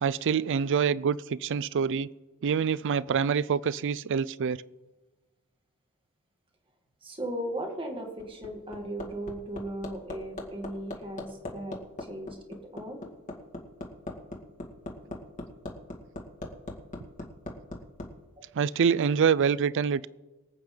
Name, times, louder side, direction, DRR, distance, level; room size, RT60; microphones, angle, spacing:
voice 1, 0.0-2.1 2.4-4.6 18.6-20.1, right 6 dB, 60° right, 0.4 m, -26 dB
voice 2, 7.0-11.8 12.1-12.4 12.7-13.0 18.4-18.5, right 1 dB, 25° right, 2.3 m, -37 dB
Hammer, 7.9-18.1 19.4-19.5, left 2 dB, 35° left, 2.2 m, -39 dB
24.0 x 8.8 x 3.9 m
head